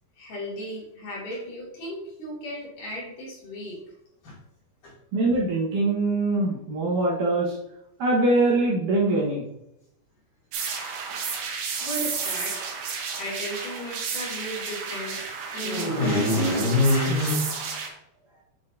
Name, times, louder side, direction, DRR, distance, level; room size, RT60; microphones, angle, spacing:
voice 1, 0.2-3.8 4.2-4.4 4.8-4.9 11.4-11.5 11.8-12.7 13.1-17.6, left 1 dB, 55° left, -5 dB, 3.8 m, -29 dB
voice 2, 5.1-7.5 8.0-9.4, right 2 dB, 60° right, -5 dB, 2.6 m, -23 dB
sound 1, 10.5-17.9, right 5 dB, 85° right, 3.2 m, -32 dB
8.4 x 6.2 x 2.7 m, 0.80 s
omnidirectional pair, 4.5 m